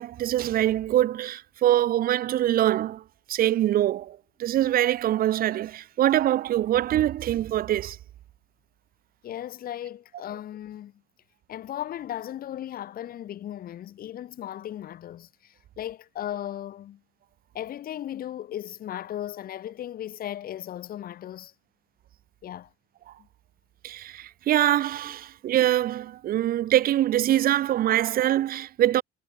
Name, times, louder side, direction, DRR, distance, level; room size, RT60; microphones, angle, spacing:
voice 1, 0.0-3.0 3.3-8.0 23.1-23.2 23.8-29.0, right 12 dB, 60° right, 0.9 m, -24 dB
voice 2, 9.2-10.9 11.5-17.0 17.5-21.5 22.4-22.7, left 11 dB, 60° left, 4.3 m, -36 dB
cardioid pair, 110°, 17 cm